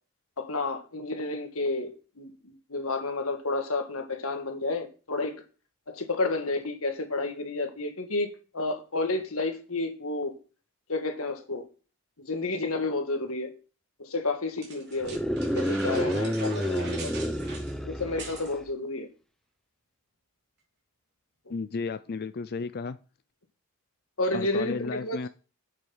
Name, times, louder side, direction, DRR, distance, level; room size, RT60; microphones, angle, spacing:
voice 1, 0.4-5.4 5.9-10.3 10.9-11.6 12.2-13.5 14.0-17.1 17.9-19.1 24.2-25.2, left 2 dB, 70° left, 1.8 m, -31 dB
sound 1, 14.6-18.5, right 3 dB, 50° right, 4.1 m, -42 dB
sound 2, 15.0-18.6, equal, ahead, 0.6 m, -29 dB
voice 2, 21.5-23.0 24.3-25.3, left 4 dB, 45° left, 0.4 m, -33 dB
8.4 x 7.8 x 5.6 m
head